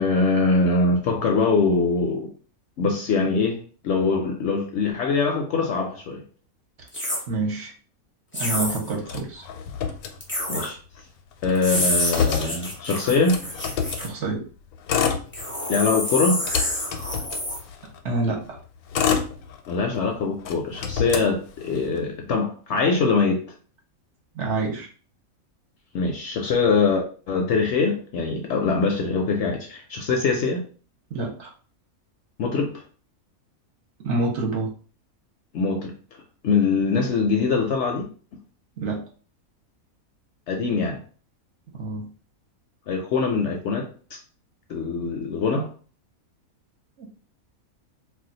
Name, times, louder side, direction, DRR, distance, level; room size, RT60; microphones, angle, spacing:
voice 1, 0.0-2.3 2.8-6.2 10.5-10.8 11.4-13.4 15.7-16.4 19.7-23.4 25.9-30.6 32.4-32.8 35.5-35.9 36.4-38.1 40.5-41.0 42.9-43.9 44.7-45.7, left 4 dB, 65° left, 0.7 m, -23 dB
sound 1, 6.9-7.2 8.3-8.9 10.2-10.7 11.5-14.1 15.3-17.6, left 1 dB, 15° left, 0.3 m, -28 dB
voice 2, 7.3-7.7 8.4-9.5 14.0-14.4 18.0-18.6 24.3-24.9 31.1-31.5 34.0-34.7 38.8-39.0 41.7-42.1 47.0-47.2, right 3 dB, 60° right, 0.9 m, -27 dB
Motor vehicle (road), 9.0-10.7 11.0-11.1 11.3-14.1 14.7-15.8 16.2-18.0 18.6-20.0 20.4-22.0, left 7 dB, 85° left, 1.1 m, -28 dB
2.5 x 2.2 x 3.8 m
omnidirectional pair, 1.5 m